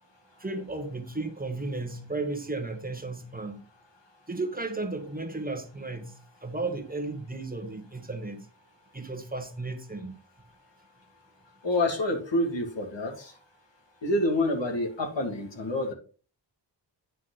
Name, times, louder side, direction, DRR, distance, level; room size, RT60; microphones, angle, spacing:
voice 1, 0.4-3.6 4.3-6.1 6.4-8.5 8.9-10.2, right 3 dB, 20° right, 1.4 m, -34 dB
voice 2, 11.6-13.3 14.0-15.9, left 1 dB, 75° left, 2.4 m, -27 dB
9.4 x 6.0 x 4.0 m
wide cardioid pair, 80°, 43 cm